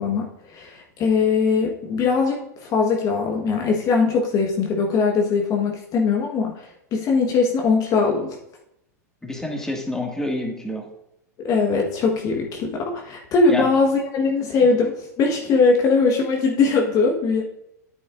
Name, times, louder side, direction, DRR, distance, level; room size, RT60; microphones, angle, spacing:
voice 1, 0.0-8.4 11.4-17.4, left 4 dB, 40° left, 1 dB, 1.4 m, -21 dB
voice 2, 9.2-10.8 13.5-13.7, left 1 dB, 5° left, 0 dB, 2.0 m, -27 dB
9.9 x 8.4 x 2.6 m, 0.80 s
hypercardioid pair, 95°, 9 cm